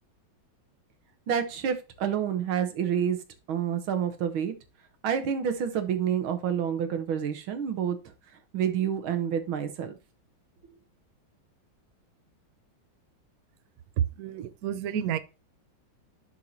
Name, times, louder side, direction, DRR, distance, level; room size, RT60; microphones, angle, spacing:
voice 1, 1.3-3.2 3.5-4.5 5.0-8.0 8.5-9.9, right 8 dB, 90° right, 1.9 m, -28 dB
voice 2, 14.0-15.2, right 9 dB, 65° right, 1.0 m, -29 dB
11.0 x 4.7 x 2.8 m
omnidirectional pair, 2.2 m